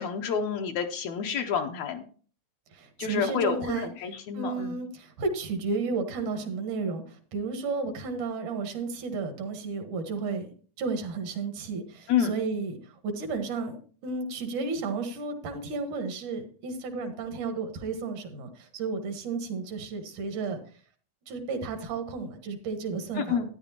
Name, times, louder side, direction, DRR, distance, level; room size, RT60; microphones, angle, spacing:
voice 1, 0.0-2.1 3.0-4.8 12.1-12.3 23.2-23.5, left 7 dB, 75° left, 4 dB, 1.9 m, -29 dB
voice 2, 2.7-3.9 4.3-10.5 10.8-13.8 14.0-20.6 21.3-23.5, right 4 dB, 80° right, 6 dB, 2.9 m, -32 dB
13.0 x 10.0 x 2.9 m, 0.43 s
omnidirectional pair, 3.4 m